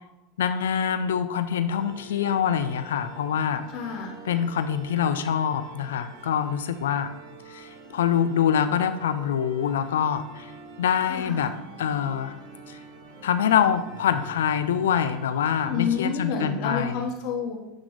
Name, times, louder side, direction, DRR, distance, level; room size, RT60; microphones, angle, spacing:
voice 1, 0.4-3.6 4.2-7.1 7.5-10.5 10.8-12.3 12.7-12.8 13.2-17.1, left 8 dB, 90° left, 11 dB, 0.5 m, -25 dB
sound 1, 1.7-16.0, right 4 dB, 75° right, 1.0 m, -46 dB
voice 2, 3.7-4.2 11.1-11.5 15.7-17.6, left 6 dB, 60° left, 2 dB, 1.4 m, -29 dB
9.4 x 3.2 x 4.0 m, 0.97 s
supercardioid pair, 110°, 0 cm